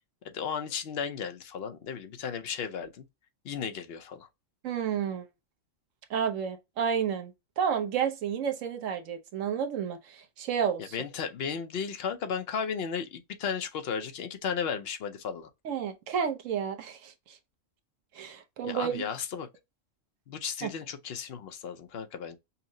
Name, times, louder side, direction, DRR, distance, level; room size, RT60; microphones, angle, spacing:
voice 1, 0.2-3.0 3.4-4.3 10.9-15.5 18.6-19.5 20.3-22.4, left 7 dB, 55° left, 0.8 m, -34 dB
voice 2, 4.6-5.3 6.1-11.0 15.6-17.4 18.1-19.1 20.6-20.7, right 7 dB, 75° right, 1.1 m, -31 dB
5.5 x 2.0 x 2.6 m
omnidirectional pair, 1.4 m